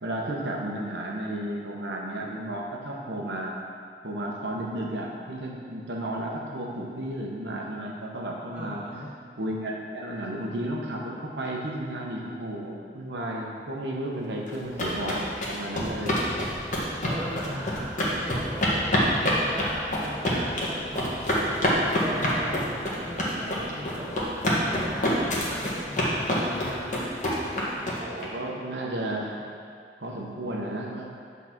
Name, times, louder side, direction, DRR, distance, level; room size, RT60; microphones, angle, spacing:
voice 1, 0.0-3.6 4.0-8.8 9.4-16.2 28.0-29.3 30.0-31.1, right 1 dB, 80° right, -2 dB, 1.0 m, -33 dB
voice 2, 8.5-9.1 16.2-21.6 22.0-24.2 24.7-26.9, equal, 10° right, -9 dB, 1.9 m, -38 dB
sound 1, 14.5-28.2, equal, 45° left, 1.5 m, -26 dB
8.4 x 4.1 x 5.9 m, 2.3 s
head